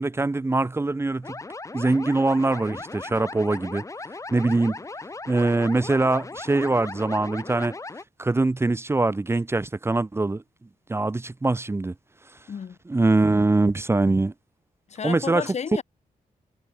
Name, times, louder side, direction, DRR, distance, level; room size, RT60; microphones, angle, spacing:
voice 1, 0.0-1.4 1.7-3.8 4.3-4.8 5.3-7.7 8.2-10.4 10.9-11.9 12.9-14.3 15.0-15.5, right 2 dB, 15° right, 1.8 m, -23 dB
sound 1, 1.2-8.0, left 3 dB, 20° left, 3.4 m, -37 dB
voice 2, 12.5-12.8 14.9-15.8, left 6 dB, 50° left, 3.0 m, -32 dB
wide cardioid pair, 160°, 15 cm